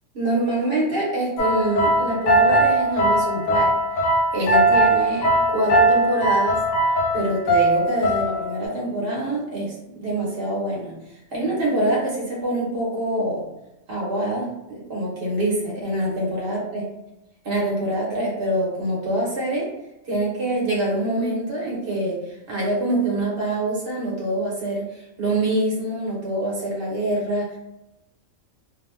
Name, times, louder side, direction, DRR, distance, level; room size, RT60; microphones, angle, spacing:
voice 1, 0.1-3.7 4.3-6.5 7.1-10.9 11.3-13.5 13.9-16.9 17.4-19.7 20.0-27.6, right 1 dB, 55° right, -5 dB, 1.0 m, -25 dB
sound 1, 1.4-8.7, right 1 dB, 90° left, 1.0 m, -20 dB
2.5 x 2.1 x 3.1 m, 0.92 s
omnidirectional pair, 1.3 m